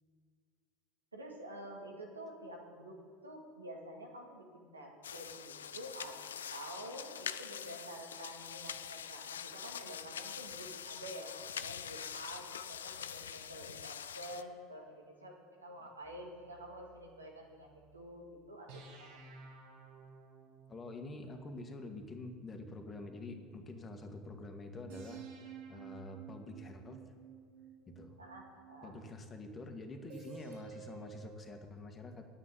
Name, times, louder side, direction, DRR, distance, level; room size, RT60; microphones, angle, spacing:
voice 1, 1.1-3.0 3.2-6.2 6.5-19.2 28.2-28.9, right 1 dB, 85° right, 0 dB, 2.2 m, -49 dB
sound 1, 5.0-14.4, left 8 dB, 75° left, 0.5 m, -44 dB
sound 2, 16.0-18.1 18.7-23.9 24.9-29.2 30.1-31.7, right 6 dB, 65° right, 2.2 m, -54 dB
voice 2, 20.7-25.3 25.7-27.0 27.9-28.2 28.8-32.3, left 2 dB, 25° left, 4 dB, 2.0 m, -47 dB
10.0 x 8.2 x 9.8 m, 2.1 s
figure-of-eight pair, 75°, 0 cm